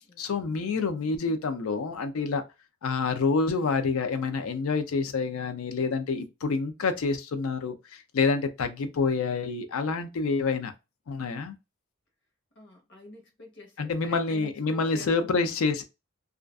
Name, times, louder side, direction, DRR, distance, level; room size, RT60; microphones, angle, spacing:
voice 1, 0.2-2.4 2.8-10.7 11.1-11.5 13.8-15.8, left 4 dB, 70° left, 0.4 m, -27 dB
voice 2, 12.6-15.5, left 2 dB, 50° left, 0.9 m, -47 dB
2.4 x 2.3 x 2.3 m
head